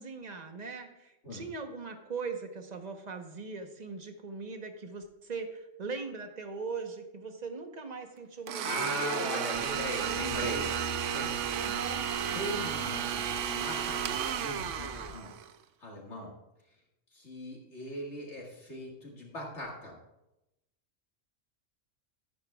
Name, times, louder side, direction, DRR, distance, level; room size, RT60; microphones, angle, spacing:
voice 1, 0.0-9.3 9.6-10.7 11.5-12.1, right 4 dB, 35° right, 6 dB, 1.0 m, -40 dB
Domestic sounds home sounds, 8.5-15.5, right 9 dB, 75° right, 1.0 m, -33 dB
voice 2, 8.6-10.7 11.1-11.6 12.3-15.4 15.8-16.3 17.1-20.0, left 1 dB, 60° left, -2 dB, 2.1 m, -39 dB
sound 1, 9.5-15.2, left 5 dB, 45° left, 0.5 m, -47 dB
12.5 x 11.0 x 2.3 m, 0.92 s
omnidirectional pair, 1.3 m